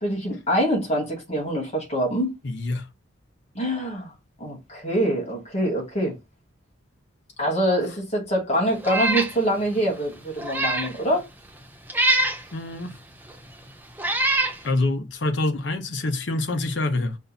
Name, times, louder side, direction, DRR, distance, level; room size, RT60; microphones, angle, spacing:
voice 1, 0.0-2.3 3.6-4.1 4.4-6.2 7.4-11.2, right 1 dB, 35° left, 1.9 m, -25 dB
voice 2, 2.4-2.9 12.5-13.0 14.6-17.2, left 2 dB, 60° left, 0.7 m, -26 dB
Meow, 8.8-9.3 9.8-9.9 10.4-10.9 11.9-12.4 13.3-13.4 14.0-14.6, right 1 dB, 10° right, 0.8 m, -23 dB
5.4 x 2.3 x 4.0 m
head